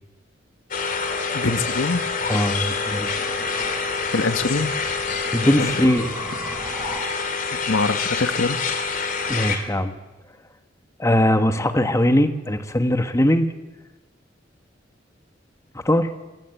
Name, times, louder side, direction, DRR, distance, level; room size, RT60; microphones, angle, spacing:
sound 1, 0.7-9.6, left 5 dB, 45° left, 2.9 m, -27 dB
sound 2, 1.1-7.0, right 1 dB, 10° right, 4.1 m, -37 dB
voice 1, 1.3-2.0 4.1-4.7 5.6-5.7 7.7-8.6, left 3 dB, 90° left, 10 dB, 1.3 m, -23 dB
voice 2, 2.3-3.1 5.3-6.1 9.3-9.9 11.0-13.5 15.8-16.1, left 1 dB, 15° left, 8 dB, 1.4 m, -20 dB
24.5 x 18.0 x 8.3 m, 1.1 s
head